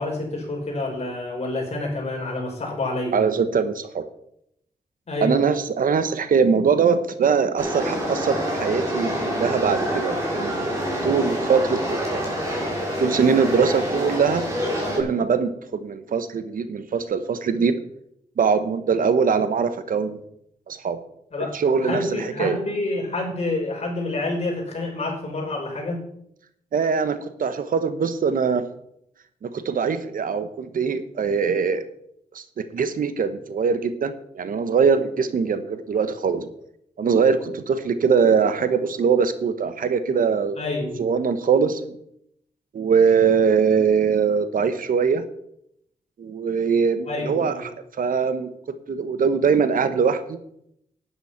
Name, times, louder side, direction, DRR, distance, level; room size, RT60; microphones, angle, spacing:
voice 1, 0.0-3.2 5.1-5.4 21.3-21.5 21.8-26.1 40.6-41.0 47.1-47.7, left 2 dB, 45° left, -1 dB, 5.4 m, -28 dB
voice 2, 3.1-4.0 5.2-12.2 13.0-14.4 15.0-15.5 15.8-17.8 18.4-20.2 20.7-21.0 21.5-22.6 26.7-28.6 29.4-31.8 32.3-36.5 37.0-40.6 41.0-41.8 42.7-45.2 46.2-47.7 48.0-48.5 48.9-50.4, right 6 dB, 70° right, 11 dB, 1.1 m, -22 dB
sound 1, 7.6-15.0, equal, 20° right, 5.6 m, -26 dB
11.0 x 10.5 x 5.8 m, 0.75 s
cardioid pair, 85°, 15 cm